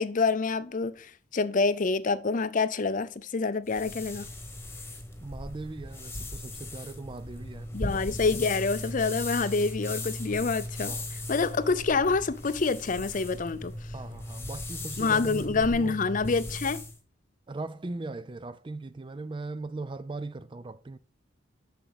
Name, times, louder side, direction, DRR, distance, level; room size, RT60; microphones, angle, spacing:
voice 1, 0.0-4.3 7.7-13.7 15.0-16.8, left 4 dB, 40° left, 0.5 m, -27 dB
sound 1, 3.7-17.0, left 1 dB, 10° left, 1.3 m, -38 dB
voice 2, 5.2-7.7 8.3-8.5 10.9-11.1 13.9-16.0 17.5-21.0, right 2 dB, 25° right, 0.4 m, -39 dB
7.0 x 6.0 x 5.3 m
head